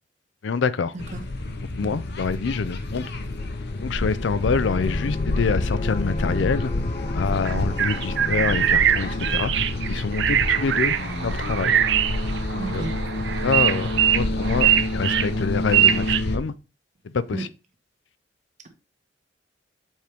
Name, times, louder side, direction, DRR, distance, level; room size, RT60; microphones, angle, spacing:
voice 1, 0.4-1.0 1.8-3.1 3.8-6.7 7.1-11.0 11.2-11.8 12.5-12.9 13.4-16.5 17.0-17.5, left 5 dB, 90° left, 0.5 m, -26 dB
sound 1, 1.0-16.4, left 2 dB, 65° left, 0.9 m, -28 dB
sound 2, 2.5-11.2, left 3 dB, 35° left, 0.5 m, -34 dB
sound 3, 7.5-16.2, right 10 dB, 70° right, 0.5 m, -22 dB
voice 2, 12.6-12.9 17.3-17.4, right 3 dB, 40° right, 1.3 m, -32 dB
7.2 x 4.5 x 3.4 m
head